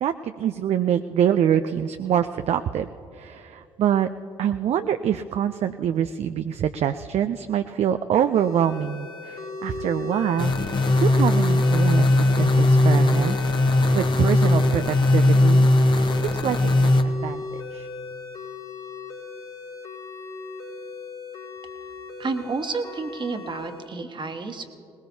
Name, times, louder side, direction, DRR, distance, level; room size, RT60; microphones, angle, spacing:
voice 1, 0.0-2.9 3.1-4.1 4.4-15.7 16.1-17.4 17.7-17.9, right 9 dB, 55° right, 9 dB, 0.5 m, -25 dB
sound 1, 8.3-23.9, left 3 dB, 85° left, 3.6 m, -36 dB
sound 2, 10.4-17.0, left 2 dB, 35° left, 1.2 m, -19 dB
voice 2, 22.2-24.7, right 4 dB, 35° right, 6 dB, 1.5 m, -30 dB
20.5 x 19.5 x 2.8 m, 2.6 s
hypercardioid pair, 50°, 13 cm